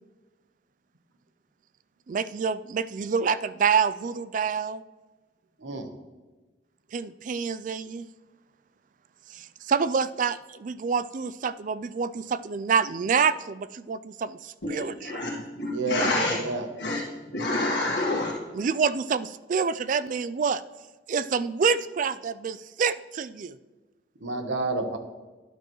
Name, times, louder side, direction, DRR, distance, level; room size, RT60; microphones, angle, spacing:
voice 1, 2.1-4.8 6.9-8.1 9.3-15.2 18.5-20.6 21.1-23.6, right 6 dB, 45° right, 15 dB, 0.3 m, -27 dB
voice 2, 5.6-5.9 15.6-16.7 24.2-25.0, right 2 dB, 90° right, 6 dB, 1.1 m, -30 dB
voice 3, 14.7-16.4 16.8-17.0 17.3-18.3, left 2 dB, 65° left, -4 dB, 1.6 m, -28 dB
12.5 x 10.0 x 3.1 m, 1.2 s
head